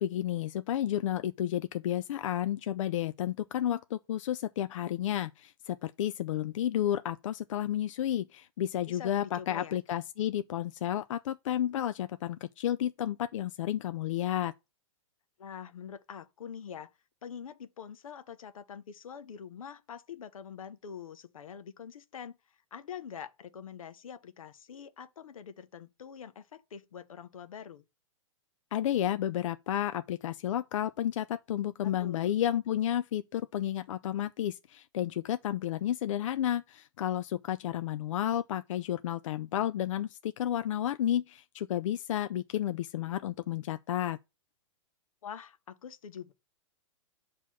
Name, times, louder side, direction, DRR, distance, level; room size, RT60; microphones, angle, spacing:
voice 1, 0.0-14.5 28.7-44.2, left 11 dB, 70° left, 0.4 m, -31 dB
voice 2, 8.9-9.8 15.4-16.9 17.2-22.4 22.7-27.8 31.8-32.3 45.2-46.3, left 7 dB, 90° left, 0.9 m, -45 dB
8.2 x 3.0 x 6.1 m
hypercardioid pair, 155°, 17 cm